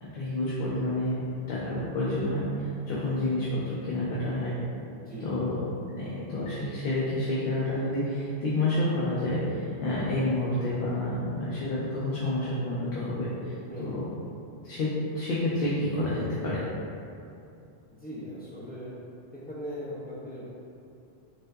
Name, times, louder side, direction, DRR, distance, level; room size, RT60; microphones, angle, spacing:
voice 1, 0.0-1.2 1.5-4.5 5.2-13.5 13.8-14.1 14.6-16.6, left 1 dB, 65° left, -8 dB, 0.7 m, -29 dB
voice 2, 4.9-5.4 13.7-14.1 18.0-18.9 19.3-20.5, equal, 10° left, -11 dB, 0.6 m, -39 dB
3.6 x 2.6 x 2.2 m, 2.6 s
omnidirectional pair, 1.1 m